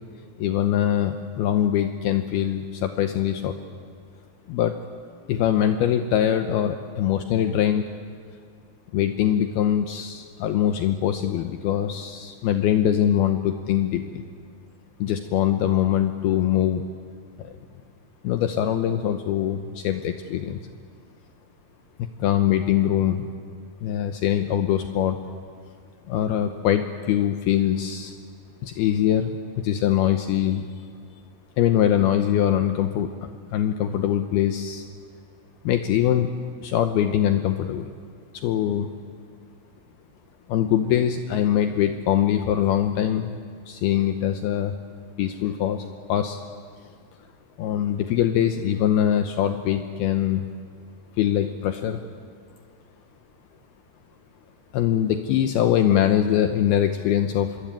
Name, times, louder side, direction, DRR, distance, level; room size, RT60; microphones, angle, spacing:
voice 1, 0.4-3.5 4.5-4.8 5.3-7.9 8.9-14.2 15.0-16.8 17.4-17.5 18.2-20.6 22.0-23.2 23.8-25.2 26.1-28.1 28.6-30.7 31.6-34.8 35.6-36.3 36.6-37.9 38.4-38.9 40.5-43.4 43.7-44.8 45.2-46.4 47.6-50.5 51.2-52.0 54.7-57.6, left 10 dB, 75° left, 7 dB, 2.6 m, -23 dB
26.0 x 23.0 x 8.9 m, 2.1 s
omnidirectional pair, 4.9 m